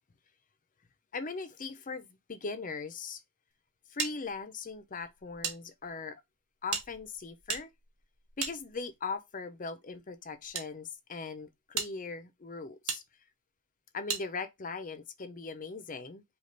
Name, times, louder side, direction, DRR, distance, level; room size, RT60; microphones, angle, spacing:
voice 1, 1.1-3.2 3.9-6.2 6.6-7.7 8.4-13.0 13.9-16.2, left 4 dB, 40° left, 0.6 m, -39 dB
sound 1, 4.0-5.6 5.8-5.9 6.7-9.1 9.9-10.7 11.2-11.3 11.7-11.9 12.9-13.0 14.1-14.2, right 6 dB, 80° right, 1.1 m, -37 dB
5.2 x 2.4 x 3.9 m
head